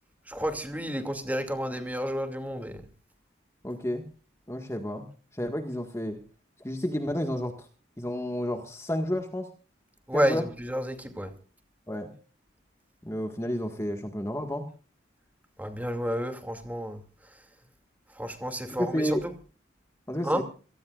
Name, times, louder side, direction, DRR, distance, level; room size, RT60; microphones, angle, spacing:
voice 1, 0.3-2.8 10.1-11.3 15.6-17.0 18.2-19.3 20.2-20.4, equal, 10° right, 6 dB, 2.6 m, -30 dB
voice 2, 3.6-4.0 4.5-5.1 5.3-6.2 6.6-7.7 8.0-9.5 10.1-10.5 11.9-12.1 13.0-14.7 18.6-19.2 20.1-20.4, equal, 15° left, 4 dB, 1.8 m, -31 dB
27.5 x 18.5 x 2.5 m, 0.39 s
head